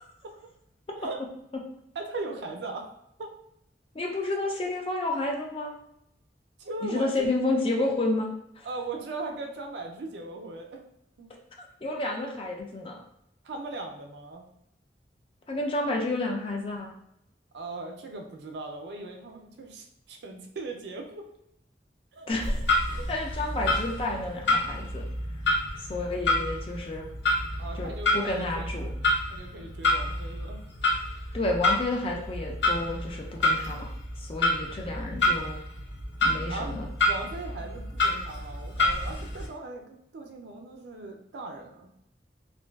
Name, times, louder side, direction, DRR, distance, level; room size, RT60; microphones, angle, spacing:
voice 1, 1.9-2.9 3.2-3.3 6.6-7.3 8.6-10.8 11.2-11.3 13.4-14.4 17.5-21.3 22.1-22.3 23.0-23.1 27.6-28.7 29.3-30.7 36.5-36.7 37.0-41.9, right 3 dB, 75° right, 3 dB, 0.4 m, -38 dB
voice 2, 3.9-5.7 6.8-8.3 8.6-8.7 11.6-12.9 15.5-16.9 22.3-22.7 23.1-25.0 25.9-27.1 27.8-28.9 31.3-33.9 34.2-35.6 36.2-36.9, left 2 dB, 30° left, 0 dB, 0.4 m, -30 dB
Clock, 22.3-39.5, left 2 dB, 90° left, 0.6 m, -29 dB
2.5 x 2.2 x 2.2 m, 0.77 s
head